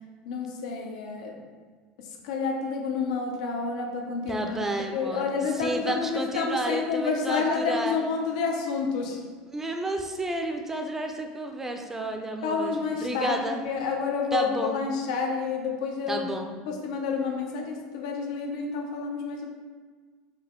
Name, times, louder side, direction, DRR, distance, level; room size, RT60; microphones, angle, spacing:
voice 1, 0.3-1.4 2.0-4.7 4.9-9.2 12.4-16.3 16.7-19.5, left 5 dB, 90° left, 1 dB, 0.6 m, -29 dB
voice 2, 4.3-5.3 5.6-8.0 9.5-13.6 14.3-14.8 16.1-16.5, right 2 dB, 10° right, 4 dB, 0.4 m, -31 dB
5.5 x 2.1 x 3.6 m, 1.5 s
supercardioid pair, 135°, 4 cm